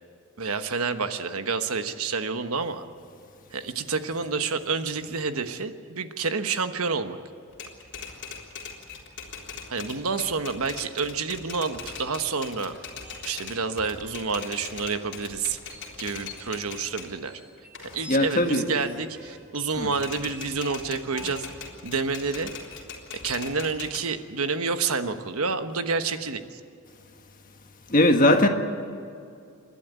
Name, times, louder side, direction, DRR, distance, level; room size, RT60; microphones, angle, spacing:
voice 1, 0.4-2.8 3.5-7.2 9.7-12.8 13.2-15.6 16.0-17.4 17.9-21.5 21.8-22.5 23.2-26.6, right 4 dB, 85° right, 1.2 m, -29 dB
Typewriter, 7.5-17.1 17.6-19.4 19.7-24.0, left 5 dB, 55° left, 3.7 m, -41 dB
sound 1, 12.7-13.2 13.8-14.3 14.6-14.7 15.0-18.3 18.6-22.5, equal, 5° right, 3.9 m, -48 dB
voice 2, 18.1-18.7 19.8-19.9 27.9-28.5, left 1 dB, 40° left, 1.6 m, -19 dB
28.5 x 11.5 x 9.4 m
head